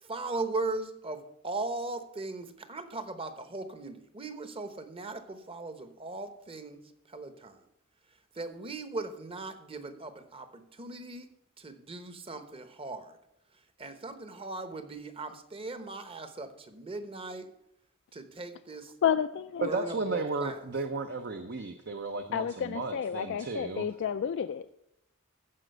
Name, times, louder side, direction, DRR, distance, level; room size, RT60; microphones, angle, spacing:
voice 1, 0.0-6.8 7.1-7.6 8.3-11.3 11.6-13.2 13.8-17.5 18.1-18.9 19.7-20.6, right 3 dB, 25° right, 9 dB, 1.0 m, -38 dB
voice 2, 19.0-19.7 22.3-24.7, left 8 dB, 55° left, 9 dB, 0.3 m, -30 dB
voice 3, 19.6-23.9, right 3 dB, 50° right, 7 dB, 0.7 m, -34 dB
14.5 x 5.0 x 6.7 m, 0.80 s
head